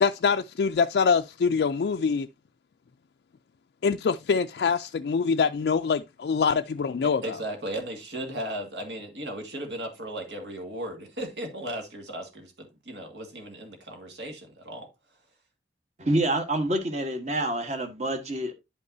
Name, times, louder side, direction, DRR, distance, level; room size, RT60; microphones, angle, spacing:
voice 1, 0.0-2.3 3.8-7.3, left 5 dB, 65° left, 0.3 m, -24 dB
voice 2, 7.0-14.9, right 1 dB, 75° right, 2.0 m, -36 dB
voice 3, 16.0-18.5, right 1 dB, 40° right, 1.3 m, -27 dB
10.0 x 5.4 x 2.6 m
head